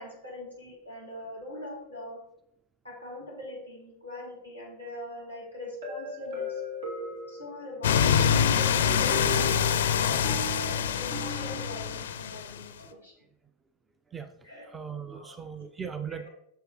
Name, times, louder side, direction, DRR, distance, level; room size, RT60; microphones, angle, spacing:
voice 1, 0.0-2.2 2.8-6.6 7.3-13.1 14.4-14.7 15.1-15.5 16.1-16.3, left 1 dB, 85° right, -4 dB, 3.0 m, -42 dB
sound 1, 5.8-8.0 8.8-11.9, equal, 65° right, 2.5 m, -38 dB
sound 2, 7.8-12.6, left 8 dB, 60° left, 0.4 m, -25 dB
voice 2, 14.7-16.3, right 7 dB, 15° right, 9 dB, 0.4 m, -38 dB
7.9 x 6.6 x 3.1 m, 0.77 s
figure-of-eight pair, 90°, 0 cm